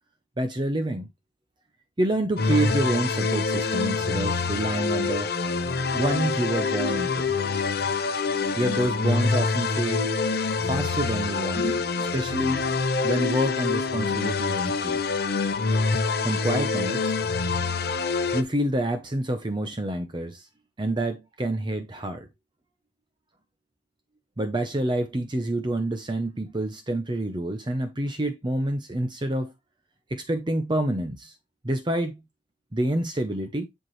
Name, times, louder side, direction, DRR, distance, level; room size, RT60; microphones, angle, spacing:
voice 1, 0.4-1.1 2.0-5.3 5.9-7.3 8.5-10.1 10.6-12.7 13.0-15.1 16.2-17.1 18.3-20.5 20.8-22.3 24.4-29.5 30.1-31.3 31.6-32.2 32.7-33.7, right 1 dB, 25° right, 0.8 m, -28 dB
sound 1, 2.4-18.4, left 4 dB, 60° left, 0.8 m, -26 dB
10.5 x 4.6 x 3.2 m
head